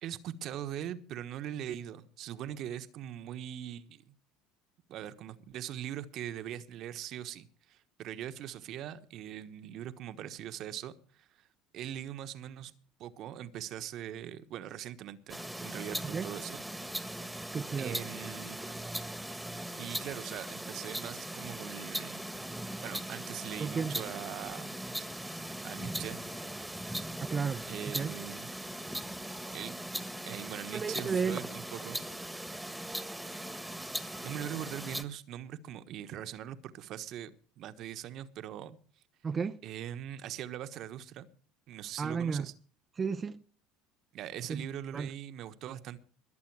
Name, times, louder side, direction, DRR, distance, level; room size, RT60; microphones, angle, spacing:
voice 1, 0.0-4.2 4.9-11.5 11.7-12.7 13.0-16.6 17.7-18.9 19.8-22.2 22.8-24.8 25.6-26.2 27.7-28.5 29.5-29.8 30.2-32.0 34.2-38.8 39.6-41.3 41.7-42.5 44.1-46.0, right 11 dB, 55° right, 1.2 m, -41 dB
sound 1, 15.3-35.0, right 1 dB, 5° right, 1.5 m, -39 dB
voice 2, 17.5-18.0 23.6-24.0 27.3-28.1 30.7-31.4 39.2-39.6 42.0-42.5 43.0-43.4 44.5-44.7 44.9-45.1, right 5 dB, 30° right, 0.6 m, -33 dB
21.0 x 8.2 x 4.8 m
hypercardioid pair, 75°, 0 cm